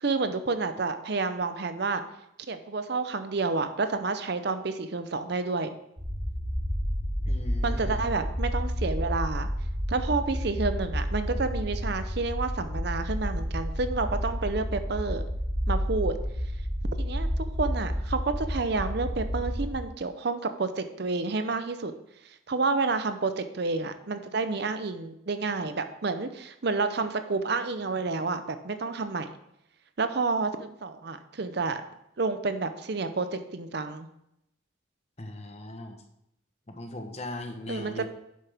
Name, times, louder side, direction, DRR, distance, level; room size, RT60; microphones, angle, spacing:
voice 1, 0.0-2.0 2.5-5.7 7.6-9.5 9.9-15.2 15.7-16.1 17.0-17.3 17.6-21.9 22.2-29.3 30.0-31.8 32.2-34.1 37.7-38.1, right 3 dB, 55° right, 10 dB, 0.6 m, -29 dB
sound 1, 6.0-19.7, equal, 15° right, 2.5 m, -30 dB
voice 2, 7.3-8.0 35.2-36.0 36.7-38.1, left 1 dB, 30° left, 5 dB, 1.0 m, -39 dB
10.0 x 7.5 x 3.5 m, 0.80 s
head